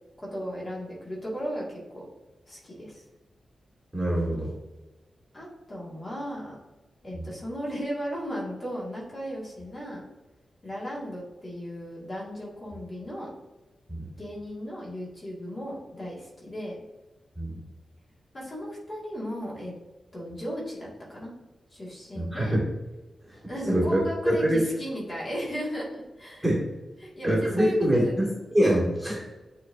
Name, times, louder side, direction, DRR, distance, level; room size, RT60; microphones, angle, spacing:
voice 1, 0.2-2.1 2.5-3.0 5.3-6.6 7.0-10.1 10.6-13.3 14.2-16.7 18.3-19.7 20.1-21.3 21.7-22.5 23.5-26.5 27.0-28.3, equal, 30° left, -5 dB, 1.9 m, -36 dB
voice 2, 3.9-4.5 7.1-7.3 13.9-14.1 17.4-17.5 22.2-22.6 23.3-23.4 23.7-24.6 26.4-26.7 27.2-29.2, equal, 5° right, -5 dB, 1.6 m, -24 dB
9.3 x 3.9 x 2.6 m, 1.1 s
wide cardioid pair, 175°, 0 cm